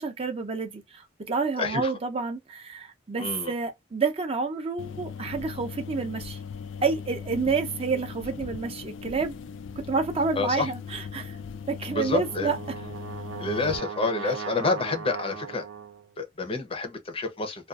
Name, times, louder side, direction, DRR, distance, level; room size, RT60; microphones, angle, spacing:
voice 1, 0.0-6.4 6.8-9.3 9.8-11.4 11.7-12.6, right 4 dB, 30° right, 0.4 m, -29 dB
voice 2, 1.6-1.9 3.2-3.5 10.4-10.7 11.9-12.5 13.4-15.7 16.2-17.7, left 3 dB, 30° left, 0.5 m, -28 dB
sound 1, 4.8-13.8, left 6 dB, 80° left, 0.4 m, -39 dB
Brass instrument, 11.9-16.1, right 6 dB, 90° right, 0.5 m, -38 dB
2.4 x 2.2 x 2.3 m
head